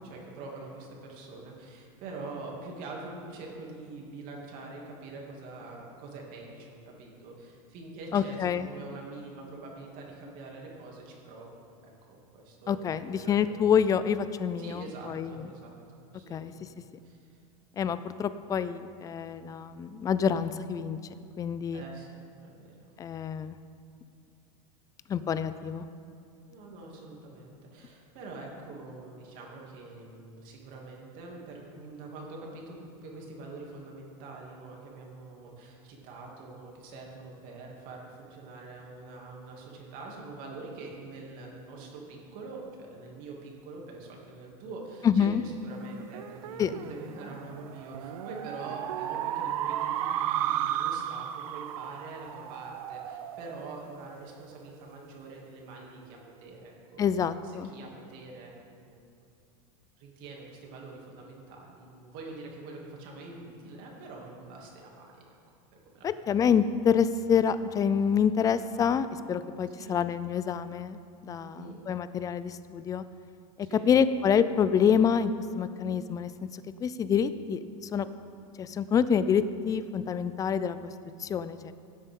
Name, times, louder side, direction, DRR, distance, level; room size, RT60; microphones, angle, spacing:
voice 1, 0.0-13.6 14.6-15.8 16.1-16.8 17.0-17.2 21.7-22.9 26.5-45.3 45.6-57.0 57.4-59.0 60.0-65.2 65.9-66.3 69.7-70.0 71.4-71.8 73.6-73.9, right 3 dB, 50° right, -1 dB, 2.6 m, -45 dB
voice 2, 8.1-8.7 12.7-15.4 16.3-16.5 17.8-21.0 21.4-21.8 23.0-23.6 25.1-25.8 45.0-45.4 46.6-46.7 57.0-57.7 66.0-73.0 73.9-78.1 78.6-80.8 81.2-81.7, left 7 dB, 20° left, 13 dB, 0.4 m, -27 dB
sound 1, 45.8-54.6, right 11 dB, 85° right, 0.6 m, -34 dB
17.0 x 8.1 x 3.8 m, 2.4 s
supercardioid pair, 135°, 18 cm